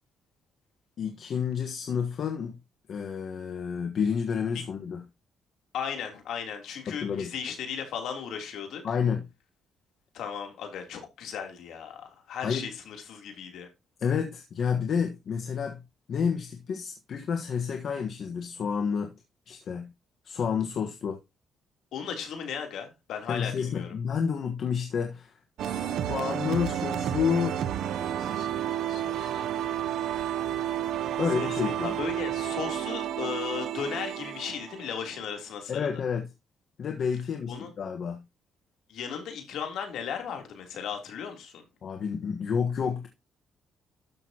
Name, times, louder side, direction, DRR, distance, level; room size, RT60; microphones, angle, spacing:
voice 1, 1.0-2.6 2.9-5.0 6.9-7.3 8.8-9.2 12.4-12.6 14.0-15.8 16.1-19.1 19.5-19.9 20.2-21.2 23.3-27.6 31.2-32.0 35.7-36.3 36.8-38.2 41.8-43.1, left 6 dB, 60° left, 1.3 m, -30 dB
voice 2, 5.7-8.8 10.1-13.7 21.9-23.9 28.2-30.4 31.3-35.9 37.5-37.7 38.9-41.6, left 7 dB, 75° left, 3.2 m, -36 dB
sound 1, 25.6-35.4, right 10 dB, 80° right, 0.7 m, -31 dB
12.5 x 6.7 x 2.9 m
cardioid pair, 90°, 0 cm